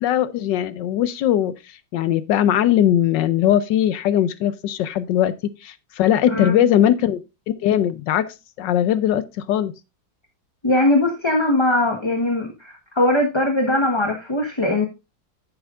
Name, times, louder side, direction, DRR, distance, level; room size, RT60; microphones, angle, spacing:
voice 1, 0.0-7.2 7.5-9.7, left 11 dB, 75° left, 1.3 m, -20 dB
voice 2, 6.2-6.6 10.6-14.9, left 1 dB, 20° left, 1.0 m, -20 dB
10.5 x 8.8 x 2.4 m
omnidirectional pair, 2.0 m